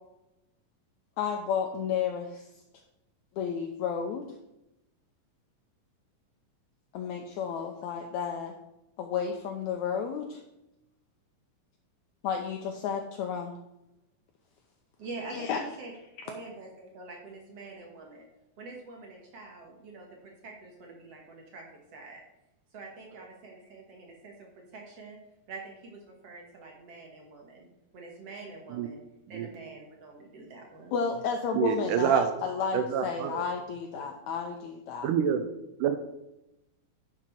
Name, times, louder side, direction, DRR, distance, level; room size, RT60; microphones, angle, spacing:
voice 1, 1.2-2.4 3.4-4.3 6.9-8.5 9.0-10.4 12.2-13.5 15.3-15.6 30.9-35.1, left 6 dB, 80° left, 4 dB, 1.7 m, -32 dB
voice 2, 15.0-15.9 16.2-18.2 18.6-21.7 21.9-22.2 22.7-25.2 25.5-29.0 29.3-30.9, right 3 dB, 55° right, 0 dB, 2.1 m, -45 dB
voice 3, 31.5-32.3 32.7-33.4 34.0-34.1 35.0-35.5 35.8-36.0, right 8 dB, 80° right, 8 dB, 2.1 m, -27 dB
11.0 x 5.9 x 4.5 m, 0.89 s
omnidirectional pair, 4.0 m